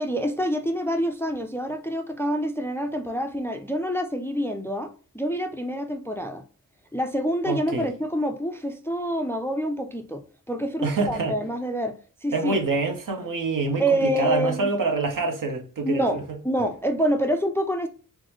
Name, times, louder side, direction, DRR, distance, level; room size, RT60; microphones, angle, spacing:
voice 1, 0.0-6.4 6.9-11.9 12.2-12.6 13.8-14.7 15.8-17.9, equal, 10° left, 0.3 m, -27 dB
voice 2, 7.5-7.9 10.8-11.3 12.3-16.4, right 3 dB, 70° right, 0.9 m, -26 dB
3.7 x 2.1 x 3.0 m
wide cardioid pair, 75°, 34 cm